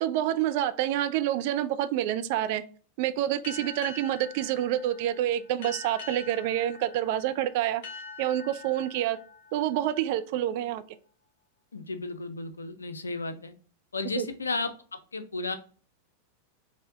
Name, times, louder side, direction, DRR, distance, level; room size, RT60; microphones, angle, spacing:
voice 1, 0.0-2.6 3.0-7.8 8.2-9.2 9.5-10.8 14.2-14.3, right 12 dB, 50° right, 11 dB, 0.3 m, -27 dB
sound 1, 3.4-10.7, left 4 dB, 55° left, 0.8 m, -45 dB
voice 2, 11.7-13.5 13.9-15.6, left 3 dB, 75° left, 9 dB, 0.5 m, -34 dB
4.3 x 2.1 x 3.5 m, 0.40 s
figure-of-eight pair, 90°, 0 cm